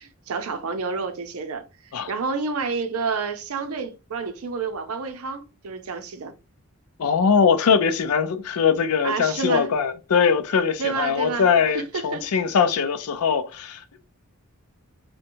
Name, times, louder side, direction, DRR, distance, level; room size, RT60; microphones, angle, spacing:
voice 1, 0.0-6.3 9.0-9.7 10.8-11.5 11.7-12.3, right 4 dB, 80° right, 0.5 m, -29 dB
voice 2, 7.0-14.0, left 6 dB, 85° left, 0.4 m, -21 dB
2.8 x 2.2 x 2.6 m
head